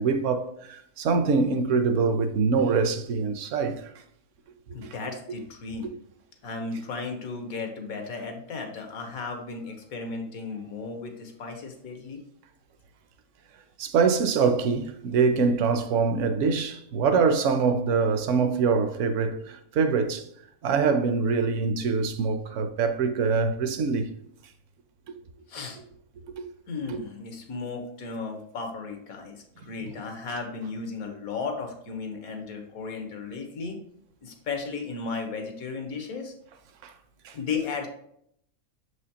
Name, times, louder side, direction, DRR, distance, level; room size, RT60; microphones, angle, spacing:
voice 1, 0.0-3.9 4.8-5.0 5.3-5.4 5.8-5.9 13.8-20.3 20.6-24.1 25.1-25.2 26.2-26.5 26.9-27.0 36.8-36.9 37.2-37.4, right 5 dB, 65° right, 0.9 m, -24 dB
voice 2, 4.7-6.0 6.4-12.2 25.5-25.8 26.7-33.8 34.2-36.3 37.3-37.9, left 4 dB, 85° left, 1.5 m, -35 dB
7.0 x 5.0 x 2.8 m
omnidirectional pair, 1.5 m